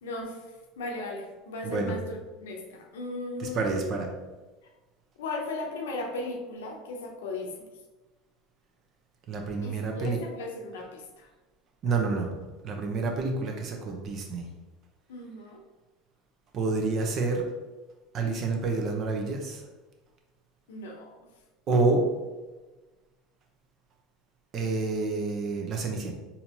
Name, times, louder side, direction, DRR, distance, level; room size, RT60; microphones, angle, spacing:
voice 1, 0.0-0.4 0.8-3.6 5.2-7.5 9.6-11.3 15.1-15.6 20.7-21.2, left 2 dB, 85° left, 1 dB, 0.7 m, -36 dB
voice 2, 1.6-2.0 3.4-4.1 9.3-10.2 11.8-12.3 12.6-14.5 16.5-17.4 18.1-19.6 21.7-22.1 24.5-26.1, right 3 dB, 45° right, 2 dB, 0.8 m, -28 dB
4.2 x 2.8 x 2.9 m, 1.2 s
hypercardioid pair, 90°, 0 cm